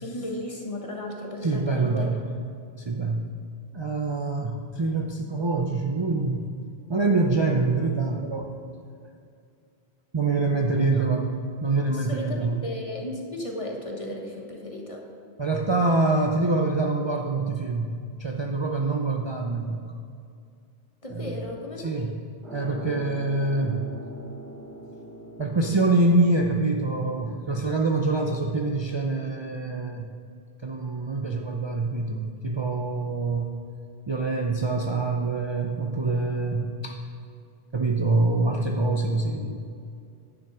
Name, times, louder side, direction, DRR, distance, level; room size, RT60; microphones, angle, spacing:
voice 1, 0.0-2.2 10.8-11.1 11.9-15.0 21.0-22.1, left 1 dB, 35° left, 0 dB, 1.3 m, -35 dB
voice 2, 1.4-2.2 2.8-3.3 3.7-6.5 6.9-8.5 10.1-11.3 11.6-12.6 15.4-19.9 21.1-21.4 21.8-22.1 22.5-23.9 25.4-30.1 30.6-33.6 34.1-37.0 37.7-39.6, right 3 dB, 35° right, 1 dB, 0.5 m, -25 dB
sound 1, 22.4-29.0, right 1 dB, 50° right, 2.8 m, -43 dB
10.0 x 7.1 x 5.0 m, 2.4 s
omnidirectional pair, 1.1 m